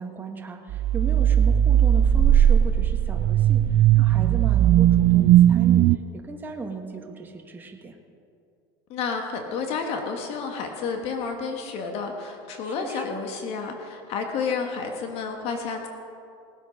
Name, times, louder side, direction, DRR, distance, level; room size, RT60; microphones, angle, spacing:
voice 1, 0.0-7.9 12.6-13.3, right 3 dB, 15° right, 2 dB, 1.4 m, -36 dB
sound 1, 0.7-6.0, right 11 dB, 45° right, 0.4 m, -18 dB
voice 2, 8.9-15.9, left 5 dB, 55° left, 4 dB, 1.5 m, -30 dB
18.5 x 8.2 x 5.3 m, 2.5 s
supercardioid pair, 110°, 13 cm